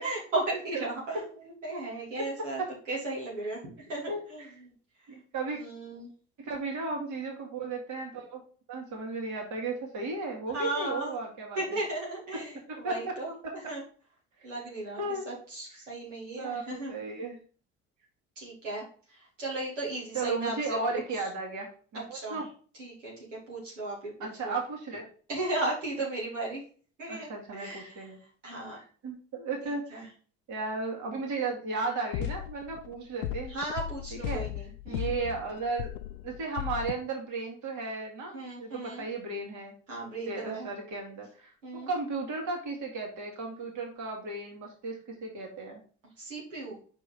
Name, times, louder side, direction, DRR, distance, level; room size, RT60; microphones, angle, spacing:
voice 1, 0.0-1.3 1.6-2.6 2.9-3.6 3.9-4.4 5.5-6.1 10.5-11.1 11.6-13.3 13.6-13.8 14.4-16.9 18.4-18.8 19.2-21.2 22.1-22.4 22.8-24.6 25.3-26.6 27.0-28.0 28.4-28.8 29.9-30.1 33.5-35.1 38.3-39.0 39.9-40.7 41.6-41.9 46.2-46.8, right 2 dB, 90° right, -5 dB, 2.3 m, -35 dB
voice 2, 4.1-4.5 5.1-5.6 6.4-8.4 8.7-11.8 12.3-13.1 13.4-13.7 15.0-15.2 16.4-17.4 20.1-22.5 24.2-25.1 27.1-28.2 28.8-30.1 30.5-33.5 34.1-34.4 34.9-35.9 36.2-39.7 40.3-45.8, right 3 dB, 55° right, 0 dB, 2.3 m, -35 dB
sound 1, 31.9-32.9 33.2-36.9, left 14 dB, 80° left, 0.5 m, -36 dB
5.3 x 4.5 x 5.1 m, 0.42 s
hypercardioid pair, 60°, 36 cm